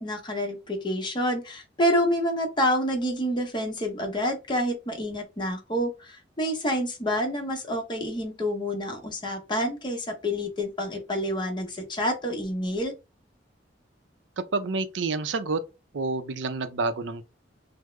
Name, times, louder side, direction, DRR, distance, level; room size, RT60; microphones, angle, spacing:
voice 1, 0.0-12.9, equal, 25° left, 0.8 m, -28 dB
voice 2, 14.4-15.6 15.9-17.2, right 3 dB, 85° right, 0.5 m, -28 dB
3.5 x 2.0 x 3.1 m
head